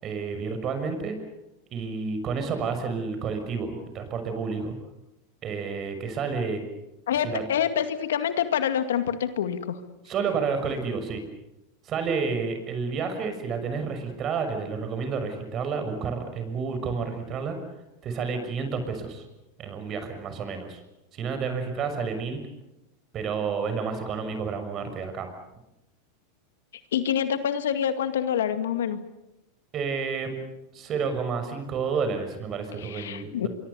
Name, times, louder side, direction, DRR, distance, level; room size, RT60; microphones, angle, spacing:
voice 1, 0.0-1.2 1.7-4.7 5.4-6.6 7.2-7.4 10.0-11.2 11.8-17.6 18.0-19.3 19.6-20.8 21.1-22.4 23.1-25.3 29.7-30.4 30.7-33.5, right 5 dB, 35° right, 8 dB, 6.3 m, -30 dB
voice 2, 7.1-9.8 26.9-29.0 32.8-33.5, left 9 dB, 85° left, 9 dB, 2.1 m, -26 dB
26.5 x 23.0 x 6.9 m, 0.93 s
hypercardioid pair, 110°, 0 cm